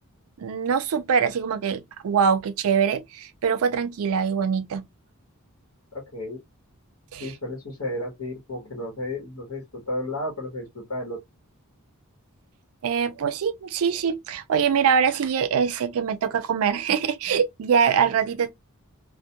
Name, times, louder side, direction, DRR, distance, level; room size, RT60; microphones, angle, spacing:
voice 1, 0.4-4.8 7.1-7.3 12.8-18.5, right 7 dB, 70° right, 0.4 m, -23 dB
voice 2, 5.9-6.4 7.2-11.2, left 1 dB, 70° left, 1.0 m, -33 dB
2.1 x 2.1 x 2.8 m
head